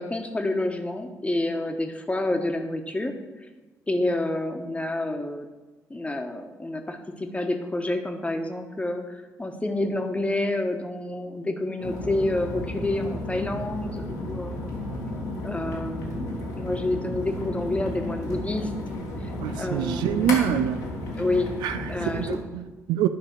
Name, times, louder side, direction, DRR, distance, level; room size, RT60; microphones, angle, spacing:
voice 1, 0.0-3.1 3.9-5.5 5.9-14.6 15.4-18.7 19.2-19.3 19.6-20.3 21.1-21.5 21.9-22.4, left 2 dB, 15° left, 1.2 m, -28 dB
sound 1, 11.8-22.4, left 1 dB, 80° left, 1.8 m, -33 dB
voice 2, 19.4-20.9 21.6-23.1, right 10 dB, 65° right, 0.4 m, -26 dB
11.0 x 5.5 x 4.8 m
figure-of-eight pair, 45°, 8 cm